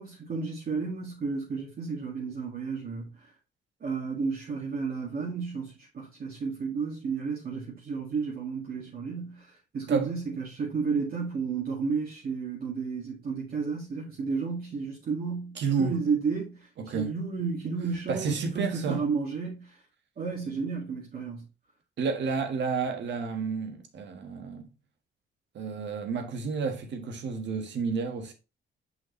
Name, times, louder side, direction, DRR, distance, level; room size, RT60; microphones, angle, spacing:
voice 1, 0.0-3.3 3.8-9.5 9.7-19.8 20.2-21.4, right 5 dB, 50° right, 2.0 m, -32 dB
voice 2, 15.6-16.0 16.8-17.2 18.1-19.1 22.0-24.7 25.5-28.3, right 5 dB, 65° right, 1.5 m, -30 dB
5.8 x 5.7 x 3.1 m
cardioid pair, 90°, 20 cm